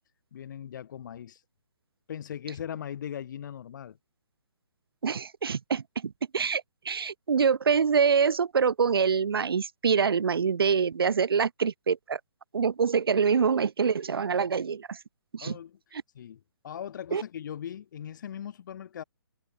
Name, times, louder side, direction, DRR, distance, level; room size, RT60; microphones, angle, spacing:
voice 1, 0.3-1.4 2.1-4.0 15.4-15.8 16.1-19.0, left 9 dB, 50° left, 6.5 m, -39 dB
voice 2, 5.0-12.2 12.5-15.0 15.3-15.6 17.1-17.2, right 6 dB, 65° right, 2.3 m, -25 dB
hypercardioid pair, 145°, 13 cm